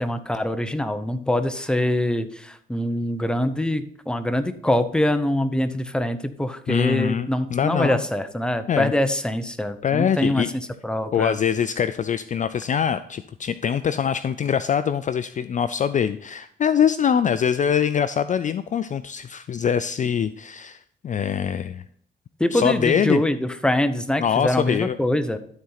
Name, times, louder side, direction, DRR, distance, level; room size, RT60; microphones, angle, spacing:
voice 1, 0.0-10.5 10.8-11.4 22.4-25.4, left 1 dB, 5° left, 10 dB, 0.8 m, -24 dB
voice 2, 6.7-8.0 8.7-8.9 9.8-10.5 11.1-21.8 22.5-23.2 24.2-25.0, left 8 dB, 40° left, 13 dB, 0.4 m, -23 dB
12.5 x 4.3 x 4.0 m, 0.64 s
cardioid pair, 90°, 20 cm